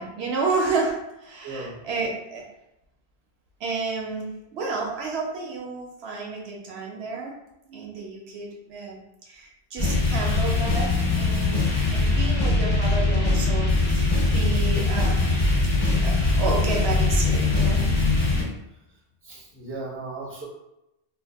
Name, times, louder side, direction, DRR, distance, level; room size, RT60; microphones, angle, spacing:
voice 1, 0.0-2.4 3.6-7.3 7.7-9.0 9.3-10.9 11.2-15.4 16.0-17.8, right 4 dB, 70° right, 0 dB, 0.8 m, -31 dB
voice 2, 1.4-1.8 19.2-20.5, right 3 dB, 15° right, -5 dB, 0.7 m, -36 dB
sound 1, 9.8-18.4, left 2 dB, 20° left, 1.4 m, -22 dB
2.6 x 2.1 x 3.3 m, 0.89 s
omnidirectional pair, 1.1 m